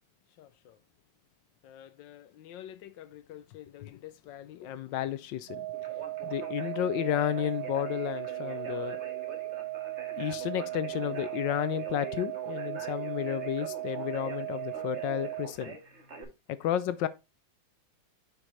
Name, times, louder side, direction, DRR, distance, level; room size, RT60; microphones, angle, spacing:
voice 1, 0.4-0.8 1.6-5.7 6.2-9.0 10.1-15.8 16.5-17.1, left 11 dB, 80° left, 1.3 m, -33 dB
sound 1, 5.5-15.5, right 18 dB, 60° right, 1.0 m, -37 dB
Conversation, 5.7-16.2, right 3 dB, 40° right, 1.9 m, -45 dB
9.9 x 4.7 x 2.6 m
omnidirectional pair, 2.0 m